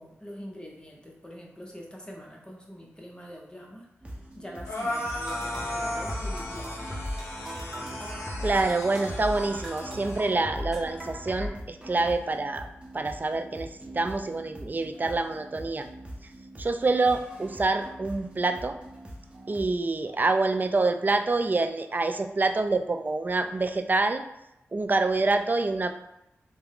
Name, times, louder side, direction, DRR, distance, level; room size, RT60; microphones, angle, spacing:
voice 1, 0.0-3.9 4.3-6.9, equal, 20° left, -1 dB, 0.9 m, -44 dB
sound 1, 4.0-19.7, right 1 dB, 20° right, 0.8 m, -44 dB
sound 2, 4.6-10.3, left 1 dB, 70° left, 0.7 m, -36 dB
sound 3, 5.1-11.5, left 1 dB, 5° right, 1.2 m, -37 dB
voice 2, 8.4-12.7 12.9-13.7 13.9-15.9 16.6-18.8 19.5-24.2 24.7-25.9, right 3 dB, 40° right, 7 dB, 0.4 m, -26 dB
3.3 x 2.1 x 3.5 m, 0.85 s
cardioid pair, 40°, 5 cm